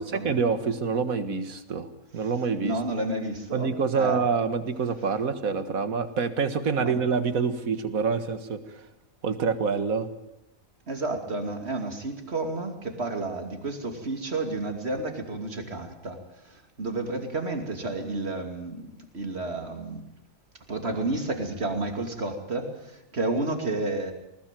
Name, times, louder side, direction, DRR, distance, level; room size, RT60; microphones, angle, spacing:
voice 1, 0.2-2.8 3.5-8.9 9.2-10.1, right 5 dB, 85° right, 11 dB, 2.0 m, -26 dB
voice 2, 2.6-4.2 6.8-6.9 10.9-20.0 20.7-24.1, right 2 dB, 50° right, 6 dB, 3.0 m, -31 dB
20.0 x 20.0 x 9.1 m, 0.83 s
omnidirectional pair, 1.4 m